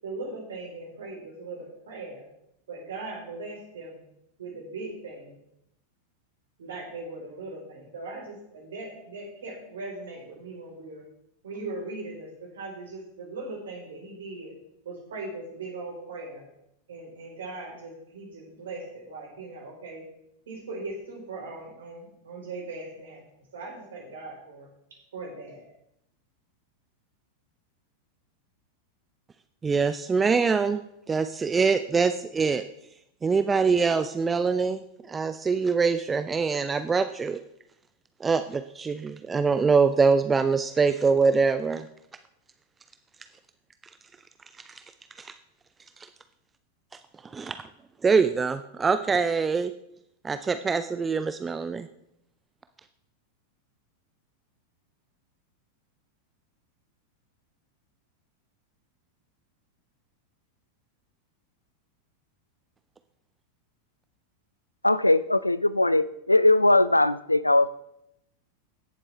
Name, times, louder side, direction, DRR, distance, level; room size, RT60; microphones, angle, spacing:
voice 1, 0.0-2.2 2.7-4.0 4.4-5.4 6.6-11.0 11.4-14.5 14.8-16.4 16.9-20.0 20.5-23.2 23.5-24.7 25.1-25.6, right 3 dB, 65° right, -1 dB, 4.3 m, -39 dB
voice 2, 29.6-30.8 31.1-32.6 33.2-37.4 38.2-41.8 45.2-45.3 47.3-47.6 48.0-49.7 50.2-51.9, right 5 dB, 15° right, 11 dB, 0.4 m, -24 dB
voice 3, 64.8-67.7, left 2 dB, 85° left, 17 dB, 0.4 m, -20 dB
16.5 x 7.4 x 3.5 m, 0.80 s
figure-of-eight pair, 90°, 0 cm